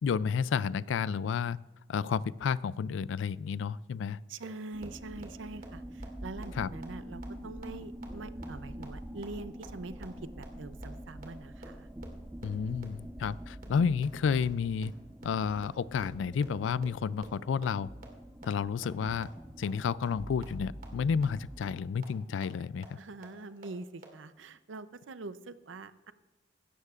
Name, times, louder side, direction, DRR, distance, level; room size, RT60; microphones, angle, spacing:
voice 1, 0.0-1.6 1.9-4.2 6.6-6.7 12.4-14.9 15.2-17.9 18.4-19.3 19.6-22.9, left 6 dB, 80° left, 20 dB, 0.3 m, -31 dB
voice 2, 4.3-11.9 23.0-26.1, right 3 dB, 80° right, 13 dB, 0.6 m, -44 dB
sound 1, 4.4-4.5 4.8-4.9 5.2-5.3 5.6-5.7 6.0-6.1 6.4-6.5 6.8-6.9 7.2-7.3 7.6-7.7 8.0-8.1 8.4-8.5 8.8-8.9 9.2-9.3 9.6-9.7 10.0-10.1 10.4-10.5 10.8-10.9 11.2-11.3 11.6-11.7 12.0-12.1 12.4-12.5 12.8-12.9 13.2-13.3 13.6-13.7 14.0-14.1 14.4-14.5 14.8-14.9 15.2-15.3 15.6-15.7 16.0-16.1 16.4-16.5 16.8-16.9 17.2-17.3 17.6-17.7 18.0-18.1 18.4-18.5 18.8-18.9 19.2-19.3 19.6-19.7 20.0-20.1 20.4-20.5 20.8-20.9 21.2-21.3 21.6-21.7 22.0-22.1 22.4-22.5 22.8-22.9 23.2-23.3 23.6-23.7 24.0-24.1, right 3 dB, 50° right, 2.1 m, -47 dB
sound 2, 4.7-21.9, right 1 dB, 10° right, 0.3 m, -45 dB
16.0 x 13.0 x 2.5 m, 1.1 s
head